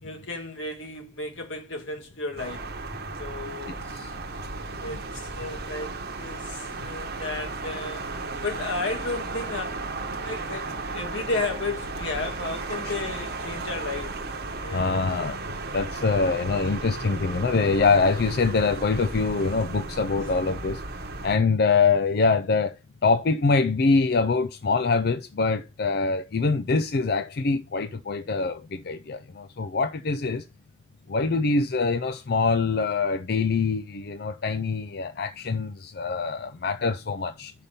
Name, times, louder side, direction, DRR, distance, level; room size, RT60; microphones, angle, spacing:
voice 1, 0.0-2.7 3.2-3.8 4.8-5.9 6.2-8.0 8.4-14.2 14.6-15.0, left 3 dB, 85° left, 2.2 m, -33 dB
sound 1, 2.4-21.4, right 3 dB, 55° right, 1.0 m, -35 dB
voice 2, 14.7-15.4 15.7-20.8 21.2-22.7 23.0-30.4 31.1-37.5, left 4 dB, 55° left, 0.4 m, -24 dB
5.7 x 5.4 x 6.7 m
head